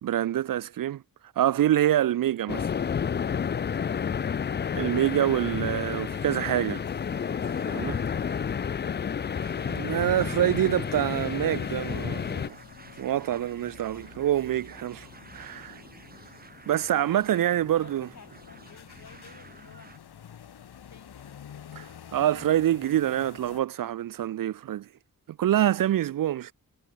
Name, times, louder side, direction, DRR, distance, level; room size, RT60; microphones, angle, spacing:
voice 1, 0.0-1.0 1.4-2.7 4.7-6.8 7.7-8.0 9.7-12.6 13.0-15.1 15.3-15.8 16.7-18.1 21.8-21.9 22.1-24.9 25.4-26.5, right 12 dB, 60° right, 0.5 m, -26 dB
sound 1, 2.5-12.5, left 7 dB, 30° left, 0.4 m, -30 dB
sound 2, 5.0-23.6, left 9 dB, 85° left, 3.3 m, -50 dB
sound 3, 7.1-20.0, right 4 dB, 25° right, 1.0 m, -52 dB
voice 2, 16.9-19.9 20.9-21.4, left 6 dB, 45° left, 6.0 m, -52 dB
wide cardioid pair, 170°, 38 cm